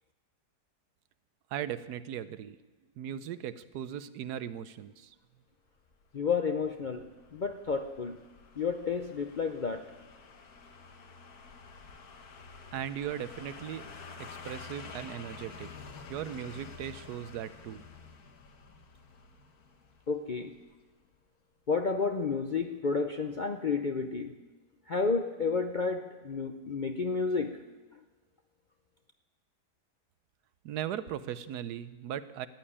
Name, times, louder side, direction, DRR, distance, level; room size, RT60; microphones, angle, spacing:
voice 1, 1.5-2.6 3.0-5.1 12.7-13.8 14.3-15.7 16.1-17.8 30.6-32.5, right 10 dB, 80° right, 14 dB, 1.2 m, -38 dB
sound 1, 5.9-20.8 21.1-21.2, left 4 dB, 70° left, 1.7 m, -49 dB
voice 2, 6.1-7.0 7.3-8.2 8.6-9.8 20.1-20.5 21.7-24.3 24.9-27.6, left 4 dB, 50° left, 6 dB, 0.5 m, -31 dB
14.5 x 9.4 x 9.9 m, 1.2 s
omnidirectional pair, 1.7 m